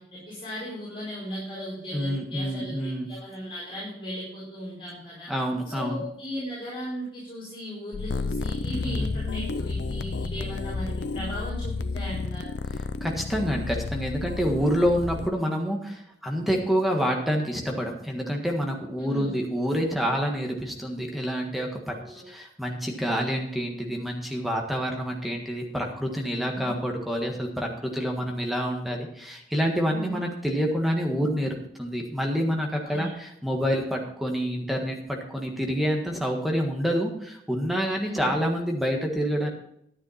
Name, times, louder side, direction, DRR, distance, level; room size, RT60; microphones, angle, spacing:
voice 1, 0.0-5.3 5.6-12.5 19.0-19.3 22.0-22.2 26.5-26.7 29.9-30.2 32.8-33.1 38.0-38.3, equal, 30° left, -9 dB, 4.8 m, -37 dB
voice 2, 1.9-3.1 5.3-6.0 8.8-9.2 13.0-39.5, equal, ahead, 1 dB, 1.6 m, -27 dB
sound 1, 7.9-15.3, left 3 dB, 80° left, 0.6 m, -31 dB
11.0 x 9.9 x 4.3 m, 0.73 s
head